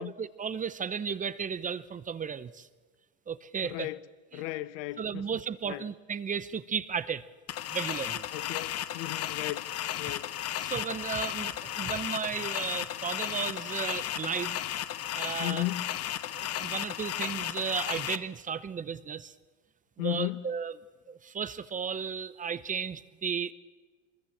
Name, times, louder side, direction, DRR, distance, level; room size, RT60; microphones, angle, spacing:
voice 1, 0.0-2.7 3.3-3.9 4.3-4.4 5.0-7.2 7.7-8.2 10.6-14.6 15.1-15.6 16.3-19.3 20.0-20.7 21.1-23.5, right 6 dB, 20° right, 0.8 m, -34 dB
voice 2, 3.6-4.0 4.3-5.3 5.6-5.9 8.3-9.7 10.0-10.3 15.4-15.9 20.0-20.4, left 18 dB, 70° left, 0.9 m, -35 dB
sound 1, 7.5-18.2, left 12 dB, 45° left, 1.0 m, -34 dB
23.5 x 21.0 x 7.3 m
supercardioid pair, 110°, 35 cm